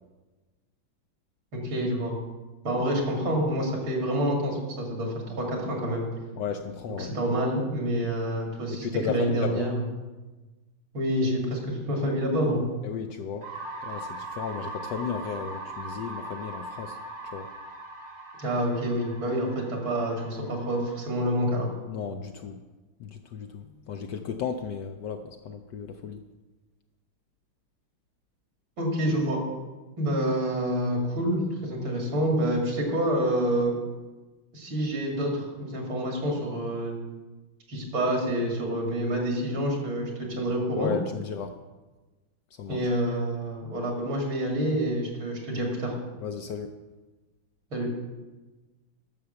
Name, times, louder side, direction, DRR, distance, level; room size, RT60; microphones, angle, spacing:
voice 1, 1.5-2.1 2.6-6.0 7.0-9.8 10.9-12.6 18.4-21.7 28.8-29.4 30.0-33.7 34.5-37.0 37.7-40.9 42.7-45.9 47.7-47.9, equal, 65° right, 1 dB, 3.2 m, -27 dB
voice 2, 6.4-7.1 8.7-9.8 12.8-13.5 13.8-17.0 17.2-17.5 21.9-22.6 23.0-26.2 40.8-41.6 42.6-42.9 46.2-46.7, left 6 dB, 70° left, 6 dB, 1.1 m, -34 dB
sound 1, 13.4-21.3, right 1 dB, 90° right, 3.5 m, -40 dB
11.0 x 6.9 x 6.9 m, 1.2 s
omnidirectional pair, 2.3 m